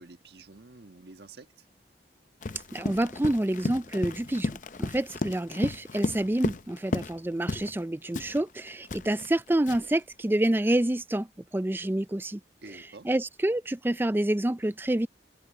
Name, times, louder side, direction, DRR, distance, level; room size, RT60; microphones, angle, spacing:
voice 1, 0.0-1.6 12.6-13.1, right 3 dB, 70° right, 1.4 m, -49 dB
Run, 2.4-7.2 7.5-7.8 8.1-10.0, left 2 dB, 45° left, 0.6 m, -33 dB
voice 2, 2.7-11.3 11.5-12.4 13.0-15.1, right 1 dB, 10° right, 0.4 m, -28 dB
head